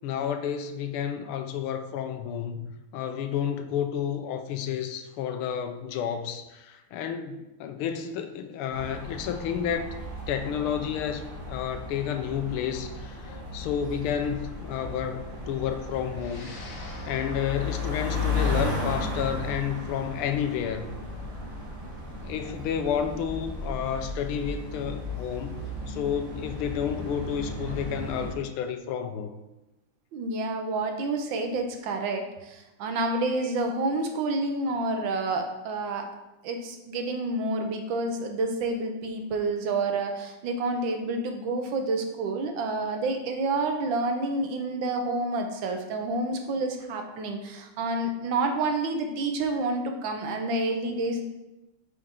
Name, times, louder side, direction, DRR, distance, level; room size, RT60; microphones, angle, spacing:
voice 1, 0.0-10.0 10.3-16.5 17.1-20.9 22.2-25.5 25.9-29.3, left 8 dB, 80° left, 8 dB, 1.5 m, -31 dB
sound 1, 8.7-28.3, left 2 dB, 40° right, 1.9 m, -35 dB
sound 2, 16.1-24.7, left 3 dB, 65° left, 1.8 m, -52 dB
voice 2, 30.1-36.1 36.4-51.2, right 2 dB, 70° right, 5 dB, 1.4 m, -29 dB
8.1 x 4.4 x 3.6 m, 0.98 s
omnidirectional pair, 2.4 m